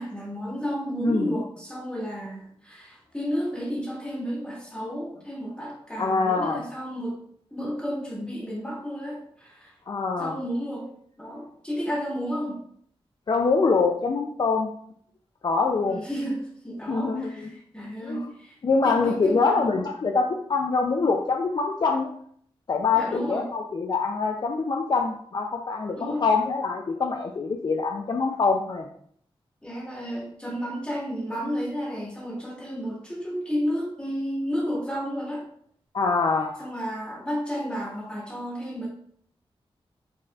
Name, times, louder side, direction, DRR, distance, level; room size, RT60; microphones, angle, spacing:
voice 1, 0.0-7.2 7.5-9.7 10.2-10.9 11.2-12.6 15.9-18.5 18.8-19.8 23.0-23.5 26.0-26.2 29.6-35.4 36.6-38.9, equal, 10° left, -4 dB, 1.6 m, -32 dB
voice 2, 1.0-1.4 6.0-6.6 9.9-10.4 13.3-14.7 15.4-16.0 16.9-17.5 18.0-18.3 18.6-22.1 22.7-28.9 35.9-36.7, left 4 dB, 45° left, 2 dB, 0.4 m, -24 dB
5.0 x 4.1 x 2.3 m, 0.63 s
wide cardioid pair, 125°, 10 cm